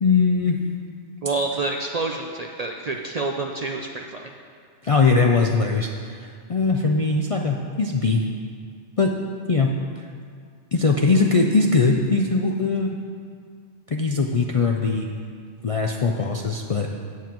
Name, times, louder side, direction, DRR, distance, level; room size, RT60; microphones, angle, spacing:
voice 1, 0.0-0.6 4.8-8.2 9.0-9.1 9.5-9.7 10.7-13.0 13.9-15.1 15.6-16.9, left 4 dB, 50° left, 1 dB, 0.4 m, -21 dB
voice 2, 1.2-4.3, right 3 dB, 50° right, 2 dB, 0.4 m, -28 dB
16.0 x 7.3 x 3.0 m, 2.1 s
omnidirectional pair, 1.2 m